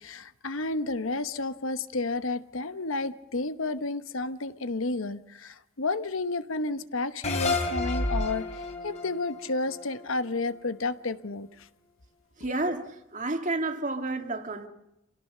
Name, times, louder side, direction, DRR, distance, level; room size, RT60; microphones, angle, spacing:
voice 1, 0.0-8.4 8.8-11.5, left 3 dB, 75° left, 1.1 m, -31 dB
sound 1, 7.2-10.5, left 2 dB, 35° left, 3.2 m, -31 dB
voice 2, 12.4-14.7, right 2 dB, 35° right, 2.1 m, -30 dB
27.5 x 17.5 x 6.7 m
head